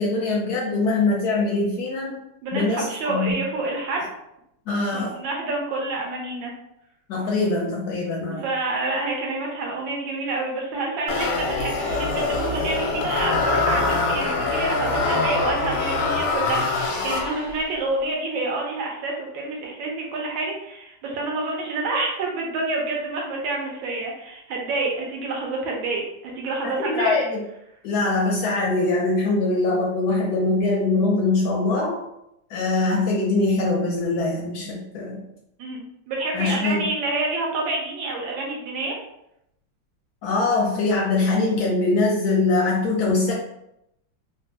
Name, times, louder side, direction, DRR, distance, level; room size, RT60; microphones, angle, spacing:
voice 1, 0.0-2.2 2.5-3.4 4.7-5.2 7.1-8.5 26.6-27.4 27.8-32.0 32.5-35.3 36.3-36.9 40.2-43.3, left 3 dB, 75° left, -2 dB, 0.9 m, -23 dB
voice 2, 2.4-4.0 4.9-6.5 8.4-27.2 35.6-39.0, right 2 dB, 80° right, -1 dB, 1.4 m, -28 dB
sound 1, 11.1-17.7, left 3 dB, 90° left, 1.4 m, -24 dB
3.4 x 2.2 x 2.7 m, 0.81 s
omnidirectional pair, 2.1 m